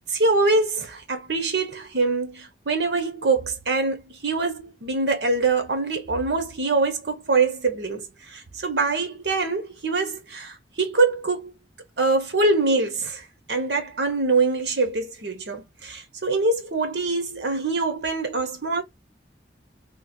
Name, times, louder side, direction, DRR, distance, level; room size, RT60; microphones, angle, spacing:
voice 1, 0.1-11.5 12.0-13.2 13.5-18.8, right 3 dB, 75° right, 0.9 m, -24 dB
3.1 x 2.2 x 2.6 m
head